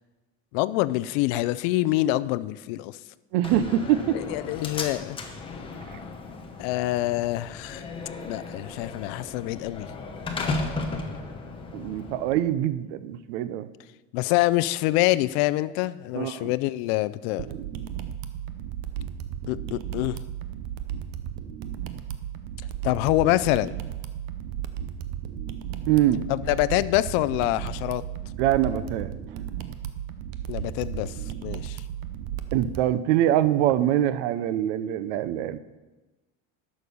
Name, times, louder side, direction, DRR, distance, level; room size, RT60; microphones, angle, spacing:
voice 1, 0.5-3.0 4.1-5.2 6.6-7.8 8.2-9.9 14.1-17.5 19.5-20.2 22.8-23.7 26.3-28.0 30.5-31.1 31.4-31.8, left 17 dB, 65° left, 15 dB, 0.5 m, -25 dB
voice 2, 3.3-4.2 11.7-13.7 16.1-16.5 25.9-26.3 28.4-29.1 32.5-35.6, right 12 dB, 85° right, 14 dB, 0.7 m, -24 dB
Slam, 3.4-12.4, left 3 dB, 15° left, 0.8 m, -35 dB
sound 1, 17.4-32.8, right 10 dB, 55° right, 0.7 m, -35 dB
11.0 x 6.7 x 5.3 m, 1.1 s
cardioid pair, 170°, 34 cm